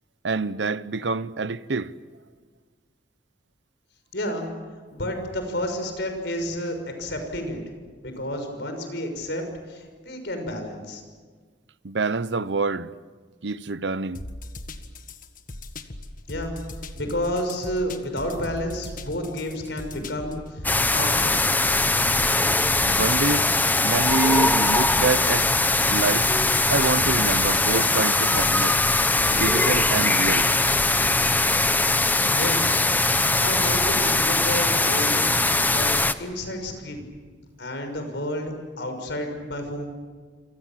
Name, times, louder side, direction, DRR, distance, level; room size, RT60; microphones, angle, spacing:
voice 1, 0.2-1.9 11.8-12.9 13.4-14.2 22.9-23.5 23.8-25.5 25.9-26.3 26.7-28.8 29.3-30.5, right 3 dB, 75° right, 0.8 m, -26 dB
voice 2, 4.1-4.5 4.9-7.6 8.0-11.0 16.3-16.6 16.9-20.6 20.9-21.4 32.3-32.8 33.4-37.0 37.6-39.9, left 1 dB, 70° left, 6.1 m, -30 dB
sound 1, 14.1-31.3, left 1 dB, 50° left, 1.6 m, -39 dB
sound 2, 20.6-36.1, left 2 dB, 10° left, 0.9 m, -21 dB
28.0 x 26.0 x 7.5 m
head